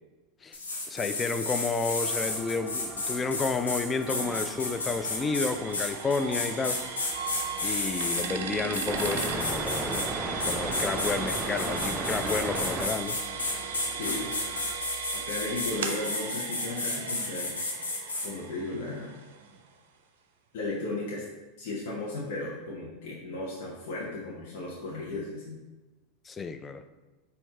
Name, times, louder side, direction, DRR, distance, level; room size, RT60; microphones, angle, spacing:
sound 1, 0.5-8.3 8.7-10.1 10.4-18.3, left 2 dB, 90° left, 0.8 m, -32 dB
voice 1, 0.9-6.8 7.6-10.1 10.5-13.2 26.3-26.8, left 4 dB, 20° left, 9 dB, 0.3 m, -31 dB
sound 2, 2.0-14.8, right 2 dB, 15° right, 0.7 m, -38 dB
sound 3, 4.1-19.7, right 7 dB, 70° right, 0.5 m, -38 dB
voice 2, 14.0-14.3 15.1-17.5 18.2-19.1 20.5-21.2 21.6-25.6, left 2 dB, 60° left, -5 dB, 1.0 m, -35 dB
4.5 x 2.6 x 4.2 m, 1.1 s
hypercardioid pair, 90°, 0 cm